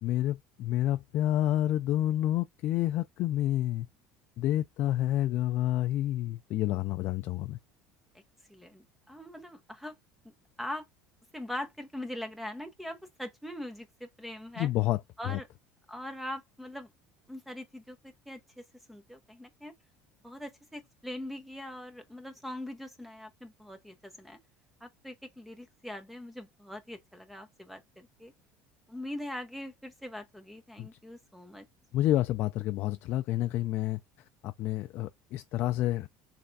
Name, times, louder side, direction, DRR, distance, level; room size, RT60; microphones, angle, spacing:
voice 1, 0.0-3.9 4.4-7.6 14.6-15.4 30.8-30.9 31.9-34.0 34.4-36.1, left 14 dB, 50° left, 0.3 m, -29 dB
voice 2, 8.5-9.9 10.6-10.8 11.3-14.7 15.2-15.5 15.9-16.9 17.3-18.4 18.9-19.7 20.2-24.4 24.8-28.3 28.9-31.6, left 1 dB, ahead, 0.8 m, -42 dB
3.4 x 3.3 x 4.0 m
cardioid pair, 150°, 5 cm